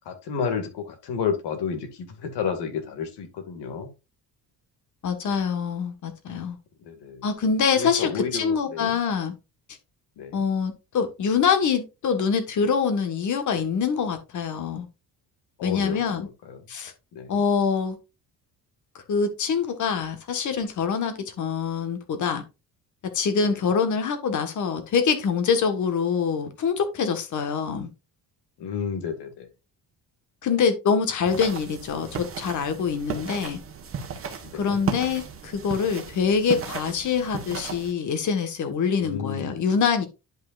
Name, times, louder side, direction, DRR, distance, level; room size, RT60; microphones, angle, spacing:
voice 1, 0.1-3.9 6.8-7.2 7.8-9.0 10.2-10.4 15.6-16.6 17.1-17.4 23.5-23.6 28.6-29.5 34.4-34.8 39.0-39.6, left 6 dB, 85° left, 2.2 m, -31 dB
voice 2, 5.0-6.6 7.2-9.3 10.3-14.9 15.6-16.3 16.7-16.9 17.3-17.9 19.1-22.4 23.1-27.9 30.4-33.6 34.5-40.1, left 6 dB, 50° left, 1.5 m, -25 dB
sound 1, 31.2-37.9, right 6 dB, 35° right, 1.3 m, -35 dB
10.5 x 5.5 x 2.5 m
cardioid pair, 170°, 39 cm